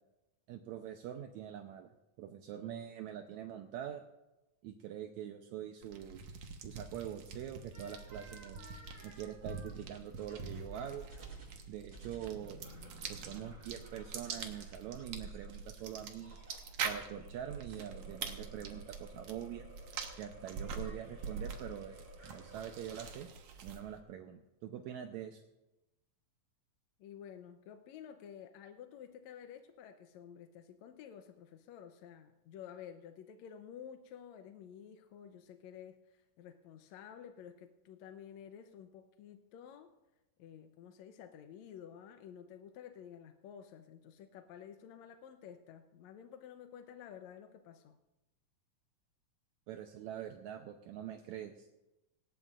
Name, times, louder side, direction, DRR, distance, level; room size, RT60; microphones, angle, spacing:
voice 1, 0.5-1.9 2.2-4.0 4.6-6.3 6.6-8.6 9.0-11.1 11.7-12.6 13.1-16.4 16.8-19.7 20.2-23.3 23.6-25.4 49.7-51.7, right 10 dB, 80° right, 5 dB, 1.7 m, -44 dB
sound 1, 5.8-24.0, right 5 dB, 60° right, 2.2 m, -45 dB
sound 2, 7.7-15.9 16.2-23.2, right 3 dB, 35° right, 5.5 m, -56 dB
Motor vehicle (road), 8.2-8.4 9.5-13.9, left 1 dB, 40° left, 4.9 m, -59 dB
voice 2, 27.0-39.9 40.4-48.0, left 8 dB, 75° left, 7 dB, 1.7 m, -52 dB
18.5 x 18.0 x 2.5 m, 0.99 s
omnidirectional pair, 4.0 m